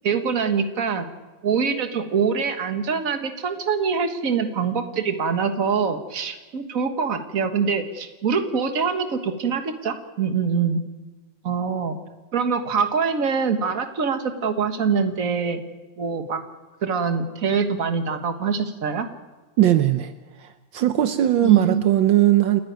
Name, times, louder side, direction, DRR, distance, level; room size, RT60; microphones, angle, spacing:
voice 1, 0.0-1.1 1.4-10.8 11.4-12.0 12.3-15.6 16.0-16.4 16.8-19.1 21.4-21.8, right 5 dB, 45° right, 7 dB, 1.8 m, -24 dB
voice 2, 19.6-20.1 20.4-22.6, right 13 dB, 75° right, 9 dB, 1.6 m, -19 dB
29.5 x 10.5 x 9.3 m, 1.2 s
omnidirectional pair, 2.1 m